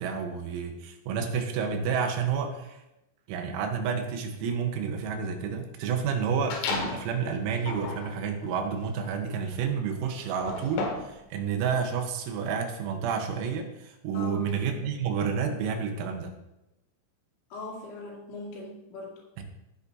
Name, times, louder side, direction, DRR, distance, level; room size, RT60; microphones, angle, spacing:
voice 1, 0.0-2.8 3.3-16.3 19.4-19.5, right 6 dB, 85° right, 4 dB, 3.8 m, -30 dB
sound 1, 6.5-7.1 7.6-11.2, left 4 dB, 85° left, 4.2 m, -35 dB
voice 2, 14.1-14.7 17.5-19.2, left 2 dB, 70° left, -4 dB, 4.8 m, -40 dB
15.5 x 8.3 x 2.8 m, 0.91 s
omnidirectional pair, 6.0 m